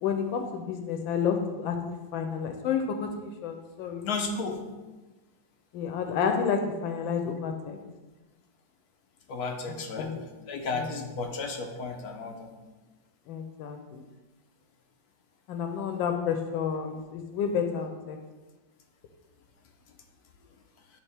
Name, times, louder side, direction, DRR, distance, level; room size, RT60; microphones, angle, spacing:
voice 1, 0.0-4.1 5.7-7.8 10.0-10.2 10.7-10.9 13.3-14.0 15.5-18.2, left 6 dB, 90° left, 5 dB, 1.4 m, -30 dB
voice 2, 4.0-4.6 9.3-10.1 10.5-12.5, left 4 dB, 65° left, 3 dB, 1.0 m, -33 dB
9.1 x 3.2 x 3.4 m, 1.2 s
omnidirectional pair, 2.1 m